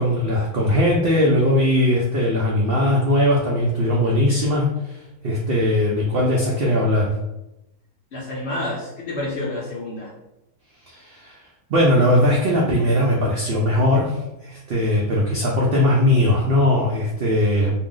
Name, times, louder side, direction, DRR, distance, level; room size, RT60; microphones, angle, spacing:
voice 1, 0.0-7.1 10.9-11.4 11.7-17.7, left 1 dB, 75° right, -3 dB, 0.5 m, -19 dB
voice 2, 8.1-10.1, left 1 dB, 60° left, -4 dB, 0.7 m, -29 dB
2.6 x 2.0 x 3.6 m, 0.93 s
omnidirectional pair, 1.6 m